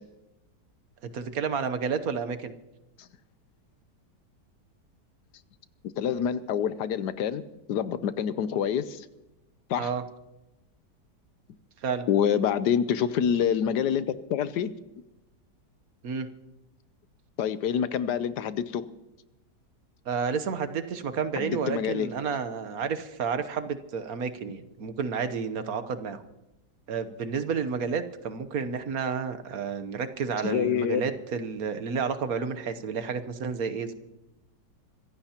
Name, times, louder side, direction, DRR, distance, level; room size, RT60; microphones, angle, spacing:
voice 1, 1.0-2.5 9.8-10.0 11.8-12.1 16.0-16.3 20.1-26.2 26.9-33.9, right 6 dB, 60° right, 10 dB, 1.4 m, -31 dB
voice 2, 6.0-7.4 7.7-9.1 9.7-9.9 12.1-14.7 17.4-18.8 21.4-22.1 30.4-31.0, left 8 dB, 75° left, 13 dB, 1.3 m, -26 dB
25.5 x 15.5 x 2.9 m, 0.94 s
omnidirectional pair, 1.9 m